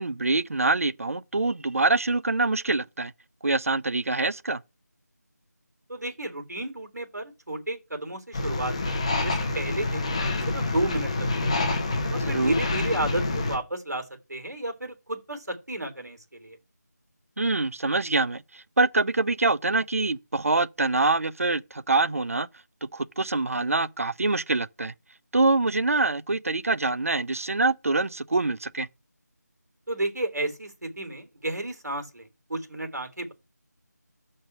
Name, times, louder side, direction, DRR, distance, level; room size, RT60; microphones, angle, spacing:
voice 1, 0.0-3.1 3.4-4.6 12.2-12.5 17.4-22.5 22.9-24.9 25.3-28.9, right 3 dB, 55° right, 0.6 m, -25 dB
voice 2, 5.9-10.1 10.5-11.7 12.1-14.0 14.3-16.6 29.9-33.3, right 1 dB, 70° right, 3.4 m, -32 dB
sound 1, 8.3-13.6, left 2 dB, 20° left, 0.9 m, -27 dB
6.0 x 5.4 x 6.7 m
figure-of-eight pair, 170°, 10 cm